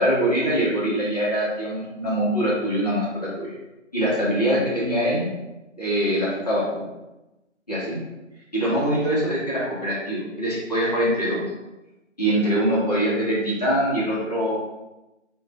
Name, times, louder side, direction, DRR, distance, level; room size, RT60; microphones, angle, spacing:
voice 1, 0.0-3.5 3.9-5.3 5.8-6.6 7.7-8.0 8.5-11.4 12.2-14.5, equal, 35° left, -8 dB, 0.8 m, -23 dB
2.4 x 2.2 x 3.3 m, 1.0 s
figure-of-eight pair, 165°, 37 cm